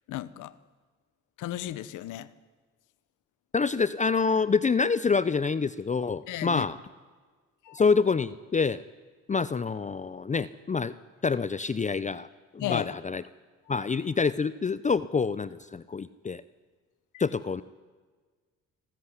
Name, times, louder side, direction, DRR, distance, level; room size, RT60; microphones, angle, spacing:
voice 1, 0.1-0.5 1.4-2.3 6.3-6.7 7.6-7.8 12.6-13.0 13.8-13.9, left 14 dB, 85° left, 18 dB, 1.0 m, -34 dB
voice 2, 3.5-6.8 7.7-8.8 9.3-10.9 11.2-12.3 12.5-13.2 13.7-16.4 17.2-17.6, left 5 dB, 25° left, 16 dB, 0.6 m, -26 dB
26.0 x 14.0 x 9.8 m, 1.4 s
cardioid pair, 90°, 30 cm